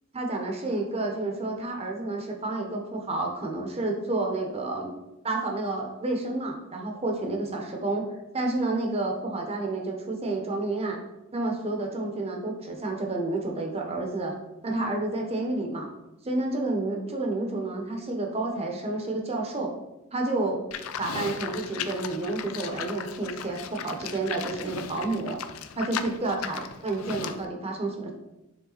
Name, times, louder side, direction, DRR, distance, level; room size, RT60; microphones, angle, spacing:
voice 1, 0.1-4.9 5.2-8.1 8.3-11.0 11.3-14.3 14.6-15.9 16.2-19.7 20.1-20.6 21.0-25.4 25.8-28.1, right 2 dB, 30° right, 1 dB, 1.0 m, -30 dB
Livestock farm animals working animals, 20.7-27.4, left 7 dB, 70° left, 0.5 m, -37 dB
7.1 x 3.6 x 4.0 m, 0.94 s
head